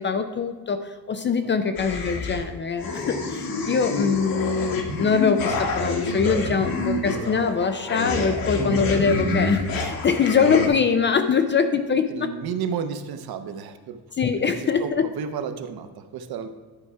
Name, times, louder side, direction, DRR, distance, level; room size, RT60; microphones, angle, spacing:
voice 1, 0.0-12.3 14.2-15.1, left 5 dB, 30° left, 9 dB, 0.3 m, -23 dB
voice 2, 1.4-2.2 9.2-9.3 12.1-14.0 14.6-16.5, right 7 dB, 60° right, 8 dB, 0.9 m, -33 dB
sound 1, 1.8-2.5 2.8-10.7, left 3 dB, 55° left, 1.3 m, -27 dB
11.0 x 4.7 x 5.5 m, 1.4 s
cardioid pair, 165°, 41 cm